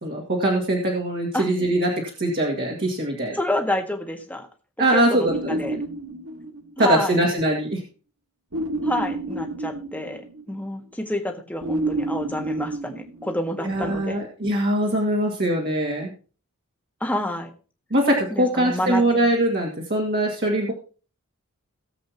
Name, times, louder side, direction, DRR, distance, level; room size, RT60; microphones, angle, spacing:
voice 1, 0.0-3.4 4.8-5.8 6.8-7.8 13.6-16.1 17.9-20.7, right 1 dB, 50° right, -1 dB, 2.3 m, -22 dB
voice 2, 3.3-4.5 4.9-5.8 6.8-7.1 8.8-10.2 10.5-14.2 17.0-17.5 18.3-19.0, left 1 dB, 5° left, 3 dB, 1.6 m, -28 dB
sound 1, 5.3-7.0 8.5-10.6 11.6-13.8, right 2 dB, 75° right, 1.7 m, -30 dB
18.5 x 7.8 x 2.9 m, 0.36 s
head